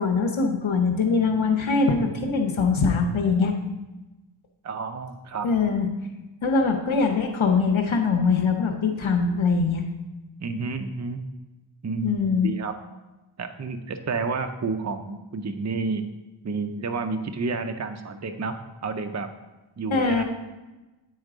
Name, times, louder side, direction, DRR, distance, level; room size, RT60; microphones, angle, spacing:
voice 1, 0.0-3.5 5.4-5.9 6.4-9.9 12.0-12.5 19.9-20.2, left 4 dB, 85° left, 3 dB, 0.8 m, -22 dB
voice 2, 4.6-5.5 10.4-11.2 11.8-12.7 13.4-16.0 16.4-19.3 19.8-20.2, right 4 dB, 35° right, 7 dB, 0.5 m, -30 dB
9.3 x 4.5 x 4.9 m, 1.1 s
wide cardioid pair, 70°, 46 cm